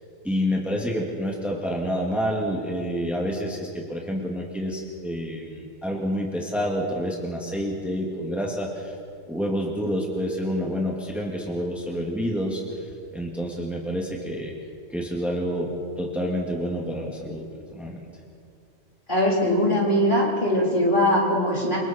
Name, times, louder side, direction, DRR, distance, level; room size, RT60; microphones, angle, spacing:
voice 1, 0.2-9.0 9.3-14.5 14.9-15.7 16.0-18.0, equal, ahead, -2 dB, 2.4 m, -28 dB
voice 2, 19.1-21.8, equal, 40° left, -4 dB, 4.6 m, -21 dB
29.0 x 25.0 x 4.6 m, 2.3 s
omnidirectional pair, 1.3 m